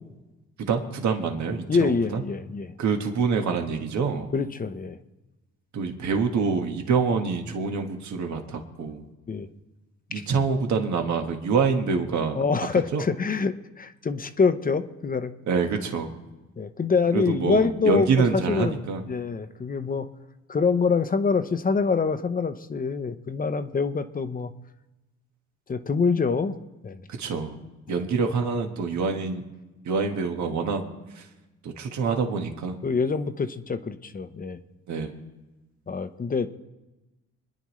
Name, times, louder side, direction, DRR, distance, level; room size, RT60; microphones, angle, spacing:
voice 1, 0.6-2.2 2.8-4.3 5.7-9.0 10.1-12.4 12.9-13.0 15.5-16.1 17.1-19.0 27.1-27.6 27.9-29.4 29.8-30.8 31.1-31.3 31.6-32.8 34.9-35.2, right 5 dB, 70° right, 4 dB, 1.6 m, -26 dB
voice 2, 1.7-2.7 4.3-5.0 9.3-9.5 12.4-15.3 16.6-18.8 19.1-20.1 20.5-24.5 25.7-26.6 26.8-27.0 32.8-34.6 35.9-36.5, left 5 dB, 30° left, 10 dB, 0.8 m, -25 dB
25.5 x 10.0 x 3.2 m, 1.1 s
cardioid pair, 90°, 30 cm